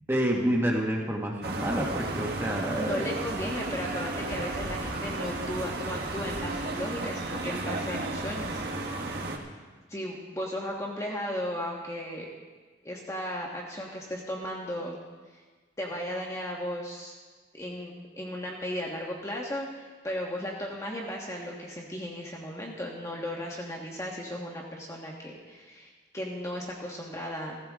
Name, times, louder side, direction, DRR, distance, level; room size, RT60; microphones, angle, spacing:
voice 1, 0.1-3.1, equal, 15° right, -1 dB, 1.7 m, -28 dB
sound 1, 1.4-9.4, right 2 dB, 65° right, 1.9 m, -33 dB
voice 2, 2.8-8.6 9.9-12.3 12.8-15.0 15.8-17.1 17.5-27.6, equal, 20° left, -2 dB, 1.5 m, -35 dB
17.0 x 14.0 x 3.7 m, 1.4 s
head